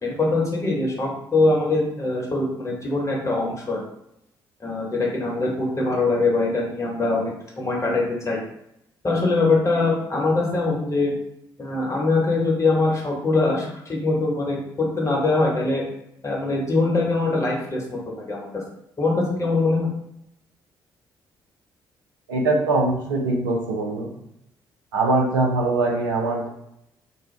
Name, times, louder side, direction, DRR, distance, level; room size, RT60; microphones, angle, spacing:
voice 1, 0.0-3.8 4.6-4.9 5.1-8.4 9.0-11.1 11.6-15.8 16.2-18.5 19.0-19.9, left 3 dB, 25° left, -3 dB, 1.0 m, -22 dB
voice 2, 22.3-24.1 24.9-26.5, right 2 dB, 75° right, 0 dB, 0.5 m, -22 dB
2.5 x 2.1 x 3.2 m, 0.79 s
figure-of-eight pair, 45°, 11 cm